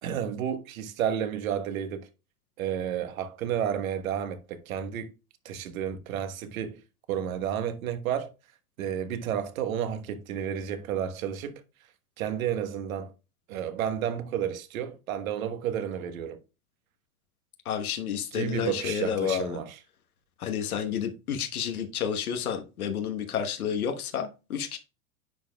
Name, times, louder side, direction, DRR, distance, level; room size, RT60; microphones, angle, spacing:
voice 1, 0.0-2.1 2.6-5.1 5.4-6.8 7.1-8.3 8.8-11.6 12.2-13.1 13.5-16.4 18.3-19.8, right 9 dB, 70° right, 1.3 m, -31 dB
voice 2, 17.6-19.6 20.4-24.8, left 8 dB, 85° left, 1.2 m, -30 dB
9.9 x 5.1 x 2.2 m
hypercardioid pair, 110°, 42 cm